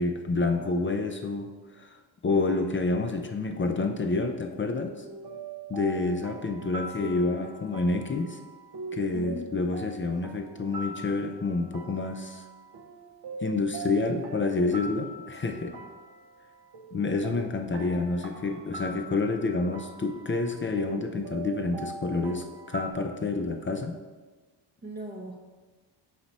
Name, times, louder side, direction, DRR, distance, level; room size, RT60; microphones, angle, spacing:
voice 1, 0.0-1.5 1.8-2.0 2.2-5.0 5.7-8.4 8.9-12.4 13.4-15.7 16.9-24.0, left 3 dB, 25° left, 4 dB, 0.5 m, -28 dB
sound 1, 5.1-22.9, right 2 dB, 60° right, 0.8 m, -42 dB
voice 2, 6.9-7.6 9.1-9.5 15.5-15.7 24.8-25.3, right 1 dB, 20° right, -1 dB, 0.8 m, -40 dB
5.7 x 4.2 x 5.3 m, 1.3 s
cardioid pair, 85°, 45 cm